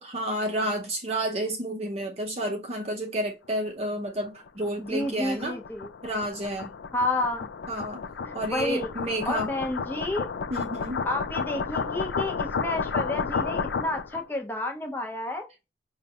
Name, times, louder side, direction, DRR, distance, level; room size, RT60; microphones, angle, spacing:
voice 1, 0.0-5.6 6.0-6.7 7.7-8.0 8.3-9.5 10.5-11.0, right 1 dB, 35° right, 0.6 m, -30 dB
sound 1, 4.2-14.2, left 5 dB, 80° left, 0.4 m, -32 dB
voice 2, 4.8-5.9 6.9-7.5 8.2-8.9 9.3-10.3 11.1-15.5, left 1 dB, 10° left, 0.6 m, -30 dB
5.1 x 2.3 x 2.8 m
head